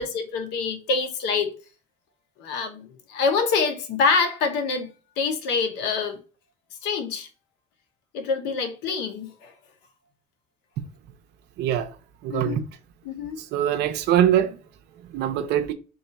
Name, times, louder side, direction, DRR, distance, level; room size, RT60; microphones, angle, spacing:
voice 1, 0.0-1.5 2.4-4.9 5.2-6.2 6.8-7.3 8.1-9.5 12.3-12.6 13.0-13.4, left 4 dB, 90° left, 0.8 m, -26 dB
voice 2, 11.6-11.9 12.2-12.6 13.5-14.6 15.1-15.7, right 11 dB, 80° right, 0.6 m, -22 dB
3.8 x 2.4 x 4.0 m
cardioid pair, 110°, 17 cm